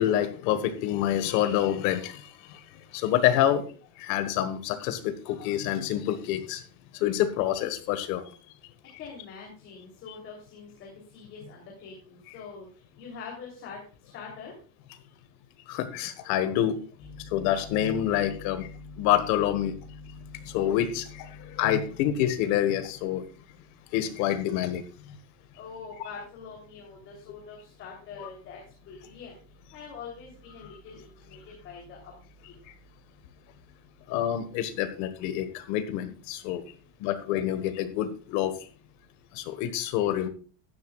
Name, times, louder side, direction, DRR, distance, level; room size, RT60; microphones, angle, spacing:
voice 1, 0.0-2.2 2.9-3.7 4.0-6.6 7.0-8.2 15.7-16.8 17.3-18.7 19.0-19.7 20.5-21.3 21.6-23.2 23.9-24.8 28.2-28.3 34.1-36.6 37.0-38.5 39.4-40.3, left 11 dB, 50° left, 10 dB, 1.5 m, -27 dB
voice 2, 9.0-12.7 13.0-13.8 14.1-14.5 17.0-19.1 19.6-21.8 25.6-28.6 28.9-29.4 29.7-32.0, left 5 dB, 35° left, -2 dB, 3.3 m, -44 dB
14.5 x 11.0 x 2.4 m, 0.38 s
cardioid pair, 175°, 37 cm